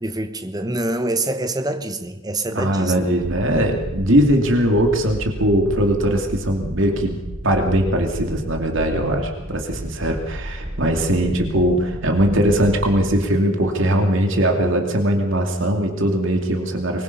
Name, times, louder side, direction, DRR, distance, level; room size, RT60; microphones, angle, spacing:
voice 1, 0.0-3.0, right 2 dB, 20° right, 9 dB, 1.2 m, -25 dB
voice 2, 2.5-17.0, right 1 dB, 60° right, 2 dB, 2.7 m, -20 dB
sound 1, 3.2-13.1, equal, 80° right, 2.8 m, -33 dB
24.0 x 21.5 x 5.5 m, 1.1 s
head